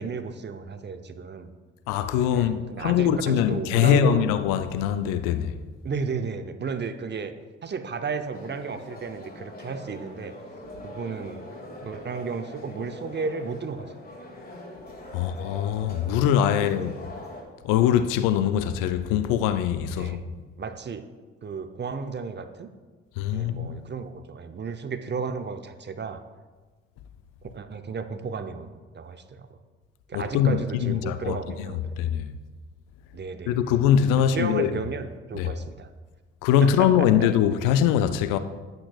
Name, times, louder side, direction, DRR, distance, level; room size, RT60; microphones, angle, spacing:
voice 1, 0.0-1.5 2.3-4.3 5.8-7.3 7.6-10.3 10.8-11.4 11.8-13.9 15.1-15.4 16.5-16.9 19.9-20.2 20.6-21.1 21.4-22.7 23.3-26.2 27.4-29.5 30.1-32.0 33.1-33.7 34.2-35.9 36.6-37.3, right 5 dB, 30° right, 0.7 m, -33 dB
voice 2, 1.9-5.5 15.1-17.0 17.6-20.2 23.2-23.9 30.1-31.7 32.0-32.3 33.5-34.7 35.3-35.5 36.4-38.4, left 9 dB, 70° left, 0.6 m, -23 dB
sound 1, 8.3-17.4, left 1 dB, 25° left, 2.4 m, -42 dB
10.5 x 8.6 x 2.4 m
hypercardioid pair, 50°, 33 cm